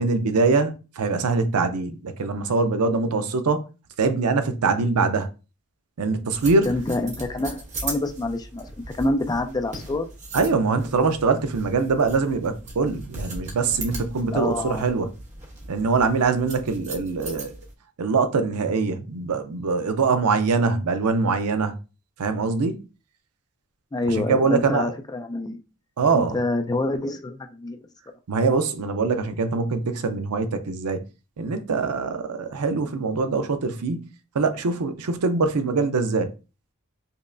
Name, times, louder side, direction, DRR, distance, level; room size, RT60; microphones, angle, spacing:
voice 1, 0.0-3.6 4.0-5.3 6.0-6.7 10.3-15.1 15.7-17.5 18.0-21.7 22.2-22.8 24.1-24.9 26.0-26.4 28.3-31.0 31.4-36.3, right 4 dB, 90° right, 0.5 m, -23 dB
sound 1, 6.3-17.7, right 2 dB, 35° right, 1.0 m, -38 dB
voice 2, 6.6-8.7 9.0-10.0 14.3-14.9 23.9-25.6 26.1-27.8, left 2 dB, 15° left, 0.3 m, -27 dB
5.3 x 2.0 x 2.5 m
head